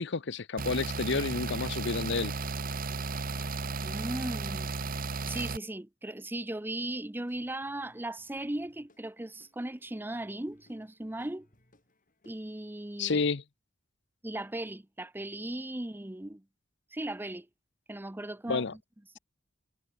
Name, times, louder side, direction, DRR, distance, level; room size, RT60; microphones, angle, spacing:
voice 1, 0.0-2.3 13.0-13.4 18.5-18.7, left 4 dB, 65° left, 0.8 m, -30 dB
sound 1, 0.6-5.6, right 3 dB, 45° right, 1.2 m, -34 dB
voice 2, 3.8-4.7 5.3-11.5 12.2-13.2 14.2-16.4 16.9-17.5 17.9-18.8, right 1 dB, 10° right, 0.7 m, -37 dB
Guitar / Drum, 7.2-12.8, left 1 dB, 45° left, 6.7 m, -67 dB
head